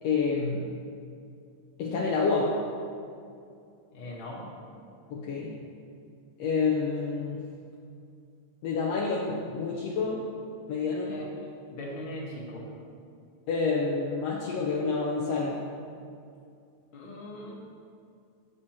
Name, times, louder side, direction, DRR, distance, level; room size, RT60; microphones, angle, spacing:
voice 1, 0.0-0.7 1.8-2.6 5.1-5.6 6.4-7.4 8.6-10.2 10.7-11.1 13.5-15.6, left 4 dB, 70° left, -4 dB, 1.6 m, -28 dB
voice 2, 3.9-4.5 11.1-12.7 16.9-17.5, left 1 dB, 50° left, -3 dB, 1.8 m, -40 dB
15.0 x 6.7 x 2.9 m, 2.4 s
omnidirectional pair, 3.7 m